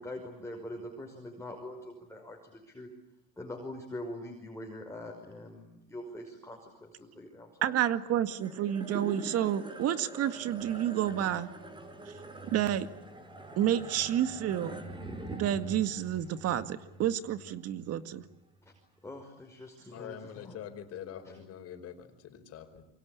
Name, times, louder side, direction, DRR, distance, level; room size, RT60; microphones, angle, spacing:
voice 1, 0.0-2.9 3.4-7.5 18.6-18.7 19.0-20.6 21.2-21.3, left 1 dB, 10° left, 1 dB, 5.7 m, -43 dB
voice 2, 7.6-11.5 12.1-12.2 12.5-12.9 13.6-14.8 15.3-18.2, right 11 dB, 50° right, 11 dB, 2.0 m, -30 dB
sound 1, 8.3-18.8, right 2 dB, 15° right, 5.3 m, -45 dB
voice 3, 19.9-22.8, left 9 dB, 50° left, 8 dB, 5.0 m, -45 dB
27.5 x 24.0 x 8.6 m, 0.88 s
supercardioid pair, 105°, 30 cm